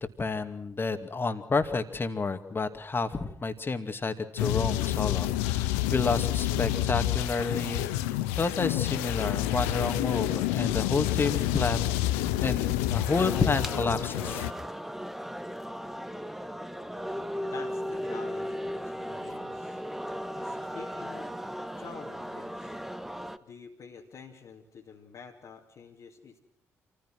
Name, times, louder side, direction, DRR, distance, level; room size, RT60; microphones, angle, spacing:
voice 1, 0.2-7.8 8.4-12.0 12.4-14.4, left 4 dB, 30° left, 9 dB, 2.3 m, -30 dB
sound 1, 4.4-14.5, left 14 dB, 75° left, 0.9 m, -28 dB
sound 2, 13.1-23.4, equal, 5° right, 1.4 m, -37 dB
voice 2, 17.5-19.8 20.3-21.3 21.8-22.8 23.4-26.4, left 5 dB, 50° left, 0 dB, 2.5 m, -48 dB
27.5 x 15.5 x 6.2 m, 0.78 s
figure-of-eight pair, 40°, 7 cm